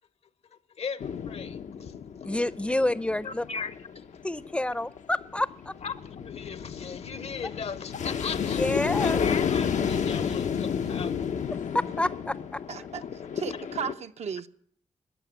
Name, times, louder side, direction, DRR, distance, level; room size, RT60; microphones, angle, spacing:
voice 1, 0.5-1.9 3.2-4.2 5.8-8.6 9.0-11.5, left 5 dB, 60° left, 0.8 m, -38 dB
sound 1, 1.0-13.9, left 7 dB, 90° left, 0.8 m, -31 dB
voice 2, 2.2-3.5 4.2-5.7 8.4-9.2 11.7-12.6, left 1 dB, 10° left, 0.5 m, -28 dB
voice 3, 12.7-14.5, right 7 dB, 65° right, 0.6 m, -35 dB
14.0 x 9.1 x 9.9 m
wide cardioid pair, 115°, 12 cm